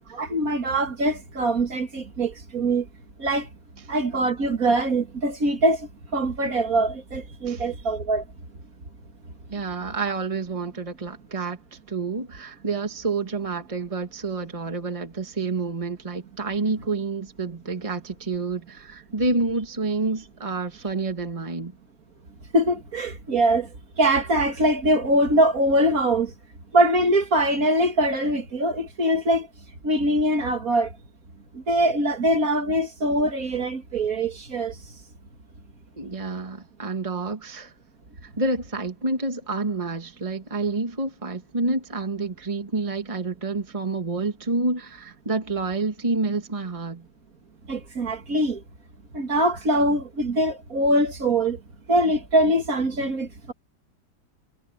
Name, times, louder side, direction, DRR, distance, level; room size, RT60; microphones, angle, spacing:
voice 1, 0.1-2.9 3.2-3.5 3.9-8.2 22.5-23.7 24.0-26.3 26.7-29.5 29.8-30.9 31.5-34.7 47.7-48.6 49.1-51.6 51.9-53.5, right 1 dB, 55° right, 2.5 m, -23 dB
voice 2, 9.5-11.6 11.9-21.8 36.0-37.7 38.4-47.0, right 3 dB, 20° right, 2.0 m, -28 dB
omnidirectional pair, 1.8 m